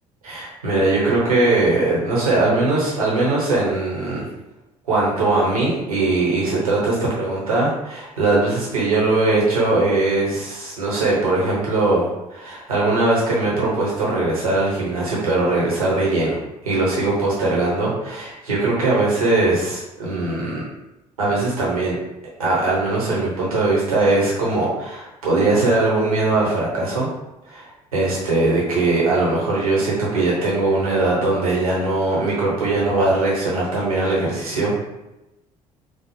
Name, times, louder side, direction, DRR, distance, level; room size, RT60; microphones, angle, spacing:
voice 1, 0.2-4.3 4.9-16.4 16.6-20.6 21.2-22.0 22.4-27.1 27.5-34.8, right 2 dB, 85° right, -5 dB, 0.9 m, -20 dB
4.5 x 2.1 x 3.0 m, 0.95 s
figure-of-eight pair, 55°, 18 cm